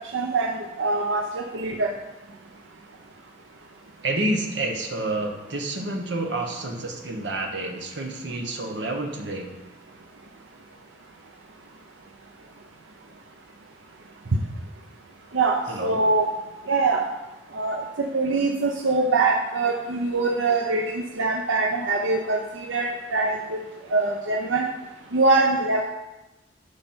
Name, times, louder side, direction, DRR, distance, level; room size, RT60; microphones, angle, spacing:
voice 1, 0.1-1.9 15.3-16.3 16.7-17.0 17.5-23.6 23.9-24.7 25.1-25.9, right 3 dB, 90° right, 1 dB, 0.7 m, -23 dB
voice 2, 4.0-9.5 15.7-16.0, right 2 dB, 65° right, 2 dB, 1.2 m, -29 dB
9.8 x 5.4 x 4.4 m, 1.0 s
head